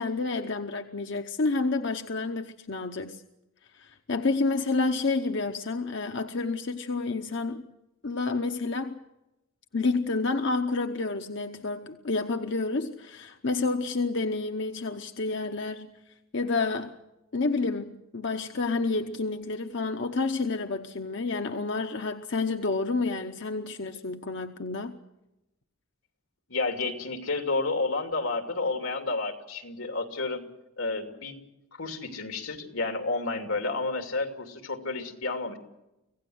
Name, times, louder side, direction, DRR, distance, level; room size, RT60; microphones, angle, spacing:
voice 1, 0.0-3.2 3.7-7.6 8.0-9.0 9.7-15.9 16.3-17.0 17.3-25.0, left 3 dB, 60° left, 0.9 m, -29 dB
voice 2, 26.5-30.4 30.8-31.4 31.7-35.6, left 3 dB, 90° left, 2.8 m, -30 dB
25.5 x 16.5 x 7.9 m
head